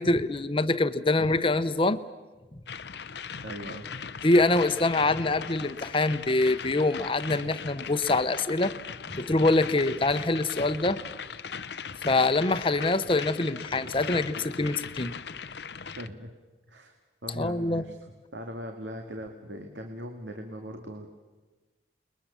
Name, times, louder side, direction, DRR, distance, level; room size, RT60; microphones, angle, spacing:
voice 1, 0.0-2.0 4.2-8.7 9.1-11.0 12.0-15.1 17.4-17.8, left 2 dB, 30° left, 12 dB, 0.9 m, -25 dB
sound 1, 2.7-16.1, left 6 dB, 70° left, 0.7 m, -39 dB
voice 2, 3.4-3.9 7.3-7.5 13.8-13.9 16.0-16.3 16.7-16.9 17.2-21.1, equal, 85° right, 4 dB, 2.2 m, -40 dB
29.0 x 21.5 x 7.1 m, 1.2 s
head